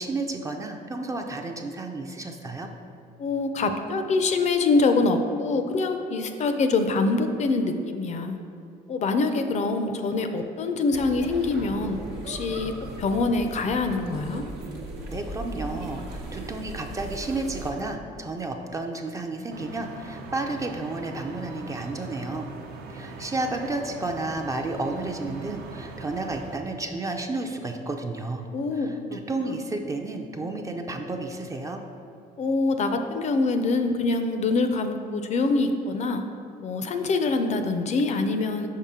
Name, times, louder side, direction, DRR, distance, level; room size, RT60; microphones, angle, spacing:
voice 1, 0.0-2.7 15.1-22.5 22.9-28.4 28.7-31.8, right 2 dB, 20° right, 4 dB, 0.4 m, -32 dB
voice 2, 3.2-8.4 8.9-12.0 12.2-12.7 13.0-14.4 28.5-29.2 29.5-29.6 32.4-36.2 36.6-38.7, left 3 dB, 45° left, 7 dB, 0.4 m, -25 dB
sound 1, 10.9-17.7, right 1 dB, 85° right, 1.0 m, -38 dB
sound 2, 19.5-26.6, right 3 dB, 65° right, 0.7 m, -41 dB
5.6 x 5.0 x 3.6 m, 2.7 s
cardioid pair, 110°, 17 cm